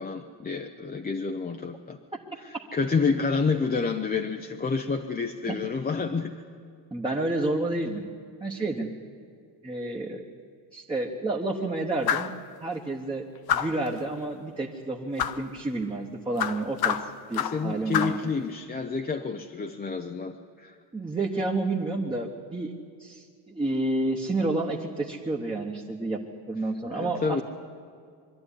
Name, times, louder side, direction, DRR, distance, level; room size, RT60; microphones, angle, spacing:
voice 1, 0.0-2.0 2.4-6.4 17.3-20.7 26.9-27.4, left 4 dB, 20° left, 4 dB, 0.6 m, -29 dB
voice 2, 6.9-8.1 8.4-8.9 9.6-10.2 10.7-12.3 12.6-18.1 20.9-22.7 23.0-26.2 26.5-27.4, right 2 dB, 10° right, -2 dB, 1.1 m, -30 dB
sound 1, 12.1-12.4 13.5-13.9 15.2-15.4 16.4-17.6 17.9-18.2, left 9 dB, 55° left, 0.9 m, -27 dB
23.0 x 13.0 x 10.0 m, 2.2 s
cardioid pair, 165°, 44 cm